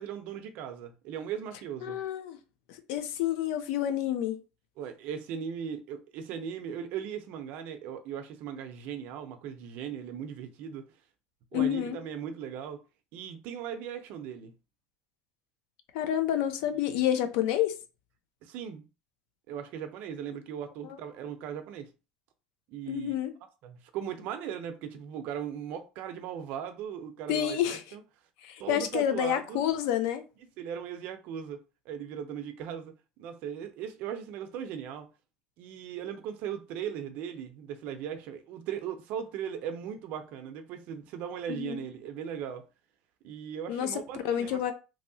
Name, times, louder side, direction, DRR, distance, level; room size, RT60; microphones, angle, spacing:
voice 1, 0.0-2.0 4.8-10.8 11.5-12.8 13.1-14.5 16.7-17.0 18.4-18.9 19.5-21.9 22.7-23.1 23.6-28.0 28.6-29.6 30.6-31.6 31.9-32.9 33.2-35.1 35.6-42.6 43.2-44.6, right 8 dB, 60° right, 0.5 m, -38 dB
voice 2, 1.8-2.4 2.7-4.4 11.5-12.0 15.9-17.7 20.8-21.0 22.9-23.3 27.3-27.8 28.4-30.2 41.5-41.8 43.7-44.7, left 11 dB, 75° left, 0.5 m, -29 dB
3.0 x 2.7 x 2.7 m
cardioid pair, 145°, 3 cm